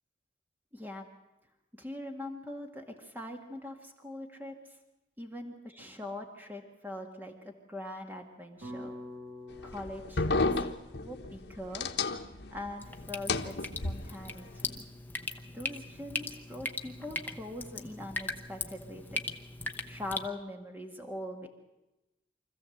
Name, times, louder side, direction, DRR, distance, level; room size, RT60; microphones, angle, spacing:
voice 1, 0.7-1.1 1.7-4.6 5.2-8.9 9.6-10.5 11.0-11.9 12.5-14.8 15.5-19.2 19.9-21.5, left 1 dB, 10° right, 3 dB, 1.8 m, -42 dB
sound 1, 8.6-12.9, left 1 dB, 85° right, 3.0 m, -48 dB
sound 2, 9.5-12.7 13.0-14.4, left 3 dB, 70° left, 1.2 m, -32 dB
Drip, 12.8-20.3, left 2 dB, 10° left, 0.9 m, -39 dB
25.0 x 15.0 x 7.9 m, 1.0 s
head